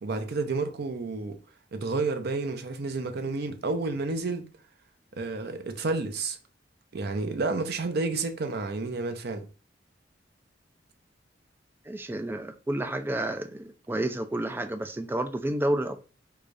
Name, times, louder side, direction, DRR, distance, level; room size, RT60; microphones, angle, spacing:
voice 1, 0.0-1.4 1.7-4.4 5.1-6.4 6.9-9.5, right 3 dB, 60° right, 0.6 m, -30 dB
voice 2, 11.9-16.1, right 1 dB, 10° right, 0.3 m, -30 dB
4.8 x 2.3 x 2.5 m
head